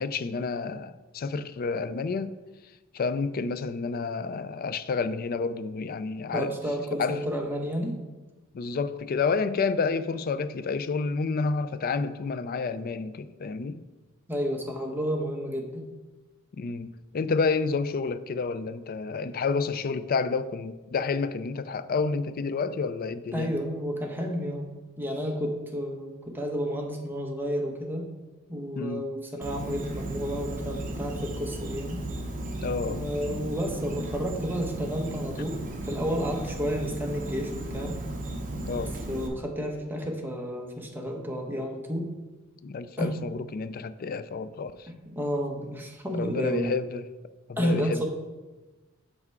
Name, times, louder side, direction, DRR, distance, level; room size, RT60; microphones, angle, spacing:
voice 1, 0.0-2.3 2.9-6.6 7.0-7.2 8.5-13.8 16.6-23.5 28.8-29.0 32.6-33.0 38.7-38.9 42.6-44.7 46.1-47.0 47.5-48.1, left 4 dB, 45° left, 0.4 m, -29 dB
voice 2, 6.3-8.0 14.3-15.9 23.3-24.7 25.0-28.1 28.5-32.0 32.8-35.6 35.8-38.0 39.1-42.1 43.0-43.1 45.1-46.7 47.6-48.1, equal, 10° right, 0.9 m, -31 dB
Insect, 29.4-39.3, right 1 dB, 40° right, 0.9 m, -35 dB
6.6 x 5.9 x 4.5 m
head